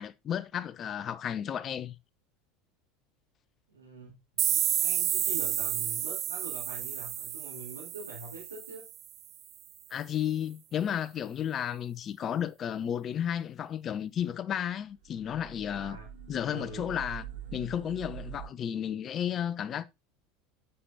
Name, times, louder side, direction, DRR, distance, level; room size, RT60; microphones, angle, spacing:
voice 1, 0.0-2.0 9.9-16.0 16.3-17.2 17.5-19.8, left 9 dB, 35° left, 0.7 m, -33 dB
voice 2, 3.7-4.2 4.5-8.9 15.8-16.1 16.5-16.9, right 2 dB, 90° right, 2.4 m, -44 dB
sound 1, 4.4-9.0, right 12 dB, 40° right, 0.4 m, -31 dB
sound 2, 14.9-18.5, right 9 dB, 65° right, 1.6 m, -44 dB
9.7 x 6.9 x 2.8 m
figure-of-eight pair, 75°, 0 cm